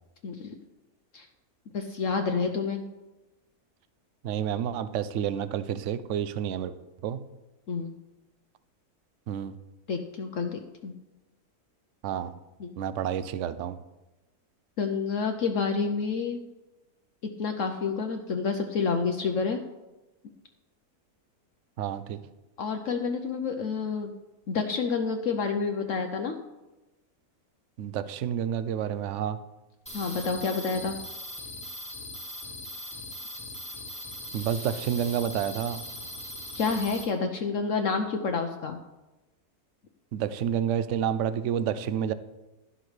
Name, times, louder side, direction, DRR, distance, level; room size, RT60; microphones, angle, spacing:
voice 1, 0.2-0.5 1.1-1.3 1.7-2.8 7.7-7.9 9.9-10.9 12.6-12.7 14.8-16.4 17.4-19.6 22.6-24.1 24.5-26.4 29.9-31.0 36.5-38.8, left 5 dB, 60° left, 5 dB, 1.0 m, -29 dB
voice 2, 4.2-6.7 7.0-7.2 9.3-9.5 12.0-12.3 12.8-13.8 21.8-22.2 27.8-29.4 34.3-35.8 40.1-42.1, right 9 dB, 60° right, 13 dB, 0.8 m, -29 dB
sound 1, 29.9-37.0, left 1 dB, 5° left, 1.6 m, -40 dB
12.5 x 11.5 x 3.3 m, 1.0 s
omnidirectional pair, 1.6 m